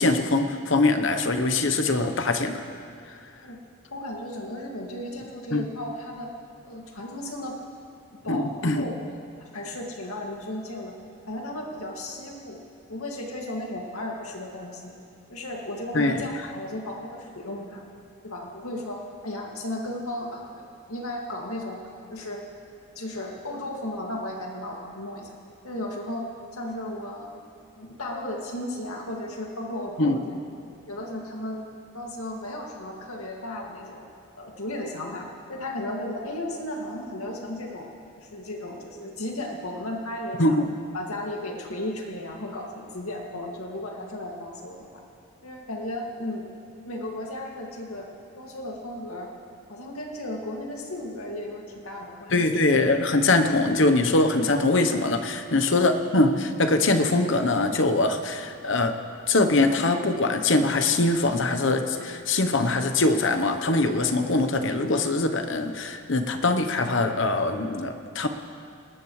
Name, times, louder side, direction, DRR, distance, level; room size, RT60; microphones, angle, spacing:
voice 1, 0.0-2.6 5.5-5.7 8.3-8.8 15.9-16.2 30.0-30.2 40.4-40.7 52.3-59.0 59.3-68.3, left 2 dB, 55° left, 7 dB, 1.0 m, -22 dB
voice 2, 3.9-6.3 6.6-7.6 8.2-10.9 11.3-12.6 12.9-14.9 15.3-17.8 18.2-21.8 22.1-22.4 23.0-25.3 25.6-27.3 27.8-30.4 30.9-31.7 31.9-34.0 34.4-37.9 38.2-40.6 40.9-44.9 45.4-46.4 46.8-48.1 48.4-49.3 49.7-52.5, left 1 dB, 80° left, 0 dB, 2.2 m, -35 dB
19.5 x 19.0 x 3.2 m, 2.7 s
head